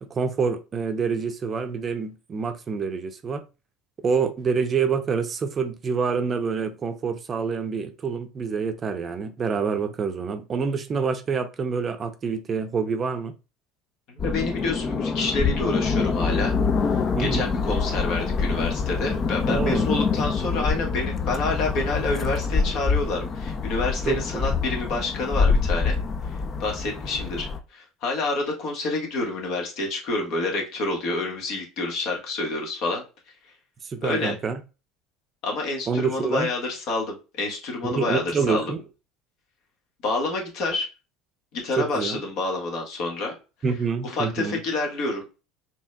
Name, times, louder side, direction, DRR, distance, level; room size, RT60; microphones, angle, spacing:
voice 1, 0.0-3.4 4.0-13.4 17.2-17.5 19.5-19.9 24.1-24.4 33.8-34.6 35.9-36.5 37.8-38.8 41.8-42.2 43.6-44.6, right 5 dB, 35° right, 0.6 m, -27 dB
voice 2, 14.1-16.5 16.9-26.0 26.6-33.0 34.0-34.3 35.4-38.7 40.0-40.9 41.5-43.3 44.0-45.2, left 3 dB, 60° left, 1.5 m, -28 dB
sound 1, 14.2-27.6, left 5 dB, 35° left, 0.5 m, -25 dB
4.5 x 2.9 x 2.2 m
hypercardioid pair, 75°, 0 cm